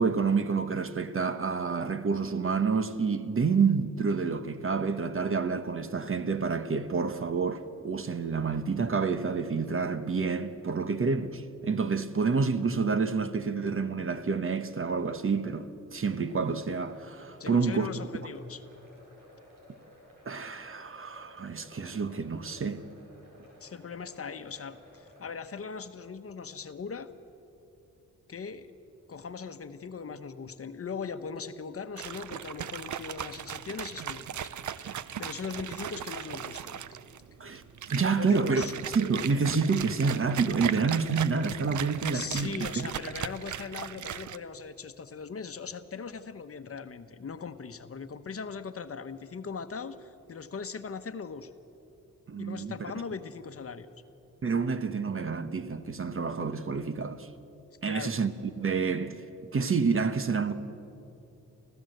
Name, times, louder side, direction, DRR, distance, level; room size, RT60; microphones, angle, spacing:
voice 1, 0.0-17.9 20.2-22.8 37.4-37.6 37.9-42.8 52.3-52.7 54.4-57.3 57.8-59.2 59.5-60.5, right 5 dB, 40° right, 1.1 m, -28 dB
sound 1, 16.1-25.3, left 1 dB, 85° right, 5.2 m, -56 dB
voice 2, 17.4-18.6 23.6-27.1 28.3-28.7 29.1-36.8 38.2-38.7 42.0-51.5 52.4-53.9 57.9-58.1, left 5 dB, 45° left, 1.0 m, -39 dB
sound 2, 32.0-44.4, right 9 dB, 65° right, 0.7 m, -38 dB
24.5 x 15.5 x 7.9 m
cardioid pair, 90°, 32 cm